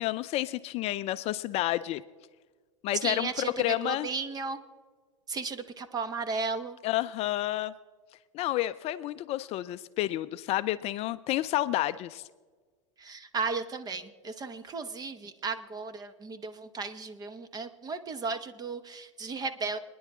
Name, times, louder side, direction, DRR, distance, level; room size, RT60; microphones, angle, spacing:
voice 1, 0.0-2.0 2.8-4.1 6.8-7.7 8.3-12.2, left 15 dB, 40° left, 13 dB, 0.5 m, -30 dB
voice 2, 3.0-4.6 5.3-6.8 13.0-19.8, right 4 dB, 25° right, 11 dB, 1.1 m, -35 dB
27.0 x 10.0 x 3.7 m, 1.5 s
hypercardioid pair, 110°, 16 cm